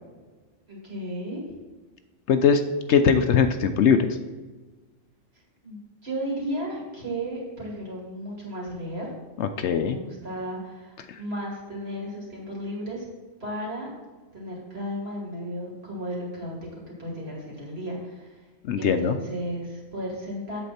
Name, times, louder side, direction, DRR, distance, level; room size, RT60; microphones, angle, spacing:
voice 1, 0.7-1.5 5.6-5.8 6.0-9.1 9.8-13.0 13.4-13.9 14.3-18.4 18.8-20.6, equal, 50° right, -3 dB, 2.9 m, -34 dB
voice 2, 2.3-2.6 2.9-4.2 9.4-10.0 11.1-11.2 18.7-19.2, left 6 dB, 65° left, 8 dB, 0.8 m, -21 dB
8.1 x 7.8 x 4.2 m, 1.3 s
omnidirectional pair, 1.3 m